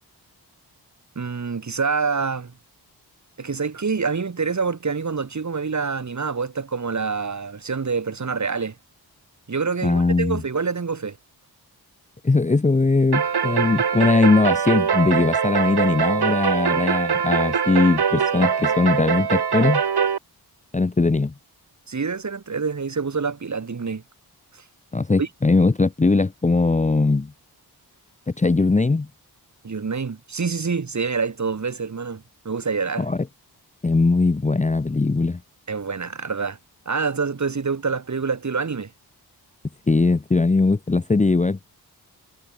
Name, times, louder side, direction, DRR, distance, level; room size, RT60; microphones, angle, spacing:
voice 1, 1.2-2.5 3.4-8.7 9.5-11.2 21.9-24.0 25.2-25.3 29.6-33.1 35.7-36.6 36.9-38.9, right 5 dB, 45° right, 4.4 m, -26 dB
voice 2, 9.8-10.4 12.2-19.8 20.7-21.3 24.9-27.3 28.4-29.1 33.0-33.2 33.8-35.4 39.9-41.6, left 3 dB, 20° left, 0.8 m, -20 dB
sound 1, 13.1-20.2, right 7 dB, 75° right, 4.9 m, -22 dB
wide cardioid pair, 150°, 39 cm